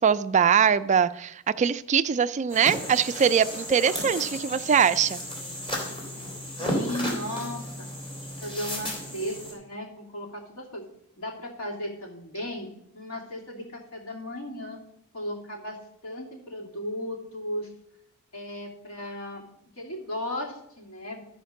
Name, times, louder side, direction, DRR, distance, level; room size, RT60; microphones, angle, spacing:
voice 1, 0.0-5.2, right 7 dB, 30° right, 13 dB, 0.3 m, -22 dB
sound 1, 2.5-9.5, equal, 25° left, 3.6 m, -34 dB
voice 2, 6.6-7.9 8.4-10.9 11.2-14.8 15.1-17.7 18.3-19.4 19.8-21.2, left 1 dB, 70° left, 0 dB, 2.8 m, -36 dB
13.0 x 5.1 x 6.4 m, 0.76 s
head